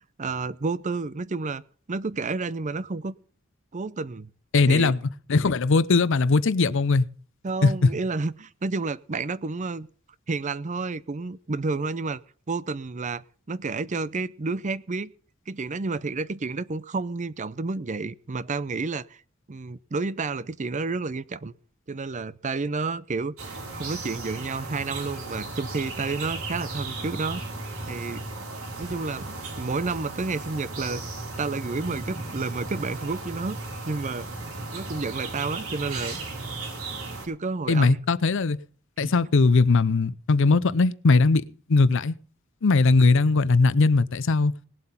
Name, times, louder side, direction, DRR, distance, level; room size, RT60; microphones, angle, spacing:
voice 1, 0.2-1.6 1.9-3.1 3.7-4.3 4.7-4.9 7.4-9.9 10.3-12.2 12.5-15.1 15.5-19.2 19.5-21.5 21.9-27.4 27.9-28.2 28.8-31.0 31.4-33.6 33.9-34.3 34.7-36.2 37.2-38.0 39.0-39.1, right 3 dB, 35° right, 0.6 m, -30 dB
voice 2, 4.5-5.0 5.3-7.0 7.6-7.7 37.7-38.6 39.0-41.4 41.7-42.1 42.6-44.5, left 3 dB, 65° left, 0.6 m, -20 dB
sound 1, 23.4-37.3, right 3 dB, 85° right, 5.0 m, -35 dB
19.5 x 7.8 x 5.7 m
head